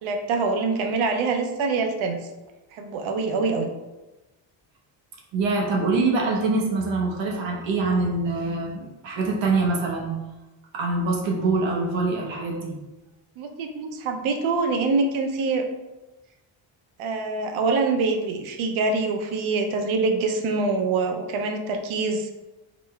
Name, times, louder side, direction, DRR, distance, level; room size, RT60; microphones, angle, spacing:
voice 1, 0.0-2.2 2.7-3.7 13.4-15.7 17.0-22.3, right 3 dB, 90° right, 5 dB, 0.8 m, -25 dB
voice 2, 5.3-10.1 10.7-12.7, right 3 dB, 70° right, 0 dB, 1.1 m, -24 dB
4.0 x 3.2 x 3.4 m, 1.1 s
cardioid pair, 160°, 47 cm